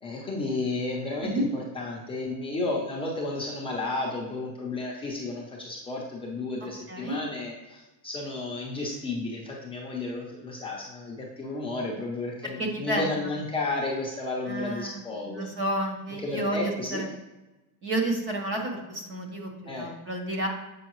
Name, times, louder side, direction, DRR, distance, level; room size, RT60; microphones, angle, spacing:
voice 1, 0.0-15.5 16.2-17.0 19.7-19.9, left 2 dB, 10° left, -4 dB, 0.6 m, -32 dB
voice 2, 6.6-7.2 12.6-13.1 14.5-17.1 17.8-20.5, right 1 dB, 25° right, 2 dB, 0.7 m, -31 dB
7.5 x 5.6 x 3.0 m, 1.0 s
cardioid pair, 180°, 46 cm